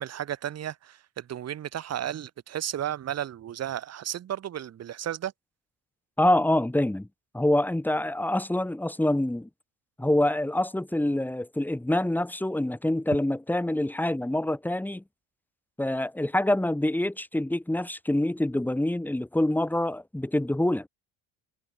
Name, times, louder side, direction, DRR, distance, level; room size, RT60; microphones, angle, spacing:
voice 1, 0.0-5.3, right 10 dB, 40° right, 1.4 m, -33 dB
voice 2, 6.2-7.1 7.3-9.5 10.0-15.0 15.8-20.9, left 1 dB, 5° left, 1.7 m, -26 dB
supercardioid pair, 95°, 38 cm